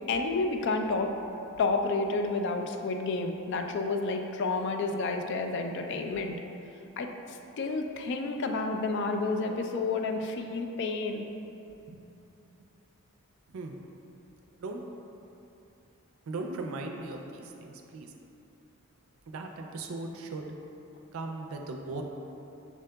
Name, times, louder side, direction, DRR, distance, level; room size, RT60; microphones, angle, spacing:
voice 1, 0.1-1.1 1.6-6.4 7.0-11.3, left 3 dB, 55° left, 4 dB, 0.3 m, -30 dB
voice 2, 13.5-13.8 14.6-14.8 16.3-18.1 19.3-20.5 21.1-22.0, right 2 dB, 75° right, 3 dB, 0.4 m, -38 dB
6.1 x 3.7 x 2.2 m, 2.8 s
head